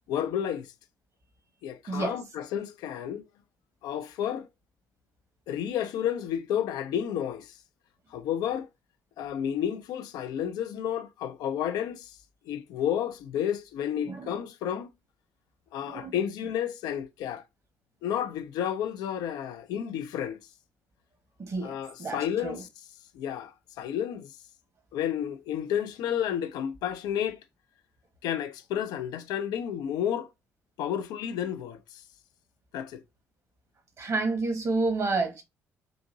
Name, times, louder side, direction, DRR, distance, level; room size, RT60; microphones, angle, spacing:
voice 1, 0.1-0.7 1.6-3.2 3.8-4.5 5.5-7.6 8.1-8.7 9.2-12.2 12.5-14.9 15.7-17.4 18.0-20.4 21.6-22.7 23.1-24.3 24.9-27.4 28.2-30.3 30.8-32.0 32.7-33.0, left 9 dB, 60° left, 0.4 m, -31 dB
voice 2, 1.9-2.2 13.9-14.3 15.8-16.1 21.4-22.6 34.0-35.4, right 3 dB, 40° right, 1.2 m, -30 dB
3.8 x 2.5 x 2.6 m
figure-of-eight pair, 45°, 8 cm